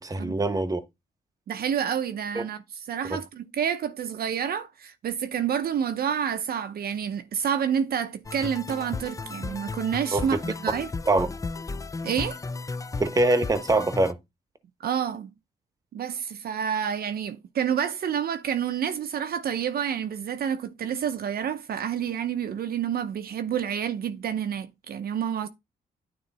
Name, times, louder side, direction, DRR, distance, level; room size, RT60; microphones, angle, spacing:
voice 1, 0.0-0.8 2.3-2.4 10.1-10.2 11.1-11.3 13.0-14.1, right 2 dB, 20° right, 1.0 m, -23 dB
voice 2, 1.5-10.9 12.0-12.4 14.8-15.3 15.9-25.5, right 8 dB, 65° right, 0.7 m, -29 dB
sound 1, 8.2-14.1, left 3 dB, 20° left, 0.4 m, -35 dB
9.5 x 3.2 x 4.1 m
cardioid pair, 80°, 17 cm